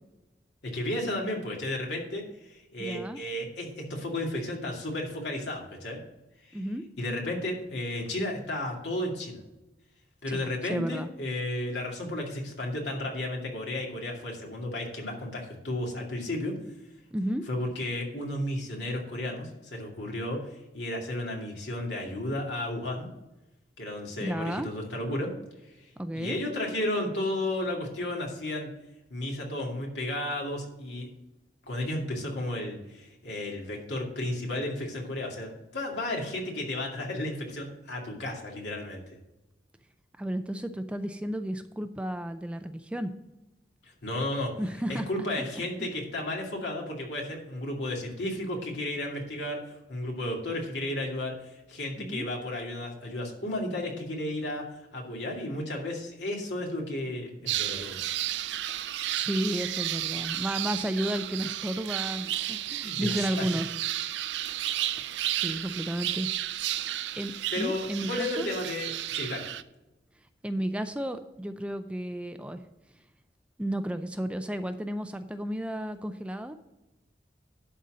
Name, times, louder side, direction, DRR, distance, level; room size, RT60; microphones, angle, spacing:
voice 1, 0.6-6.0 6.4-6.6 7.0-9.4 10.2-16.5 17.5-23.1 23.8-25.3 25.6-28.7 29.1-31.1 31.6-39.2 43.8-44.5 44.9-54.7 54.9-58.0 62.8-63.3 65.2-65.4 67.5-69.5, left 1 dB, 80° left, 0 dB, 2.3 m, -33 dB
voice 2, 2.8-3.2 6.5-6.8 10.3-11.1 17.1-17.4 24.2-24.7 26.0-26.4 40.2-43.1 44.6-45.1 45.8-45.9 52.0-52.3 59.1-63.7 65.3-66.3 67.1-68.5 70.4-72.6 73.6-76.5, equal, 5° right, 9 dB, 0.4 m, -32 dB
sound 1, 57.5-69.6, right 13 dB, 80° right, 0.4 m, -32 dB
11.5 x 4.2 x 6.3 m, 0.99 s
head